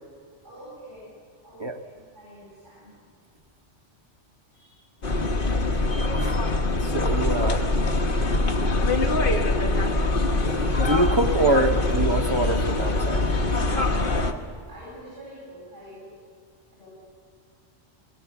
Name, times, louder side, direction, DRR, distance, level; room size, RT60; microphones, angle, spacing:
voice 1, 0.4-1.2 1.4-2.9 4.5-4.8 14.5-16.1 16.7-16.9, right 1 dB, 80° right, -8 dB, 8.5 m, -46 dB
sound 1, 5.0-14.3, left 2 dB, 50° left, 1.3 m, -23 dB
voice 2, 6.8-7.6 10.4-13.3, right 2 dB, 30° right, 5 dB, 0.7 m, -25 dB
22.5 x 16.5 x 7.0 m, 2.1 s
omnidirectional pair, 1.2 m